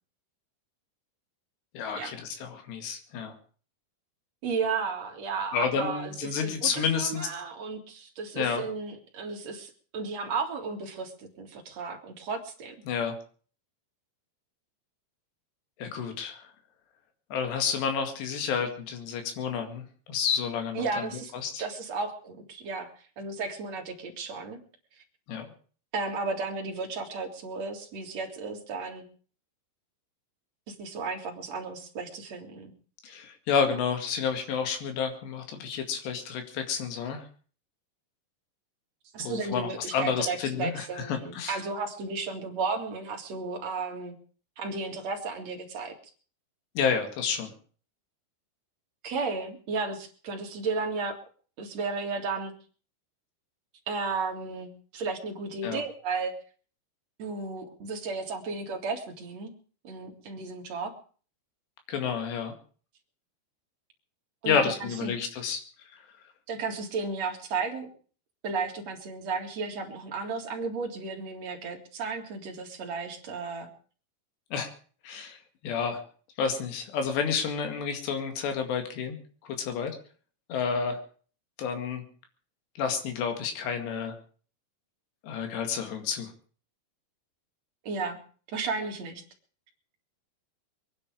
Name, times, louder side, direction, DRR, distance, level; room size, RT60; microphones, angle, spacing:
voice 1, 1.7-3.4 5.5-7.3 8.4-8.6 12.9-13.2 15.8-16.4 17.3-21.1 21.3-21.6 25.3-25.5 33.0-37.3 39.2-41.6 46.8-47.5 55.6-55.8 61.9-62.5 64.5-65.6 65.9-66.0 74.5-74.7 75.0-75.4 75.6-76.0 76.4-79.2 79.4-80.0 80.5-81.0 81.6-82.0 82.8-84.1 85.2-86.3, left 6 dB, 80° left, 5 dB, 4.3 m, -30 dB
voice 2, 4.4-12.7 20.7-21.3 21.6-22.9 23.2-24.6 25.9-29.0 30.7-32.7 39.1-44.2 44.6-45.9 49.0-51.2 51.6-52.5 53.9-56.4 57.2-59.5 59.8-60.9 64.4-65.1 66.5-67.9 68.4-73.7 87.8-88.2 88.5-89.2, right 4 dB, 45° right, 2 dB, 2.8 m, -34 dB
23.5 x 10.0 x 5.0 m, 0.41 s
omnidirectional pair, 4.9 m